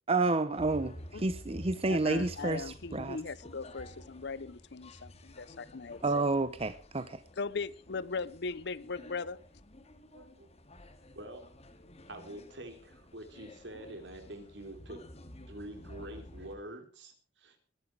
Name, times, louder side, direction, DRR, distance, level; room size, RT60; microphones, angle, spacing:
voice 1, 0.1-3.2 6.0-7.2, right 3 dB, 35° right, 0.8 m, -30 dB
sound 1, 0.5-16.6, left 1 dB, 35° left, 2.2 m, -51 dB
voice 2, 1.9-6.0 7.4-9.4, left 4 dB, 65° left, 0.8 m, -38 dB
voice 3, 10.1-10.5 11.2-11.4 12.1-15.0 15.5-17.6, right 1 dB, 70° right, 3.6 m, -46 dB
21.0 x 11.0 x 4.8 m
head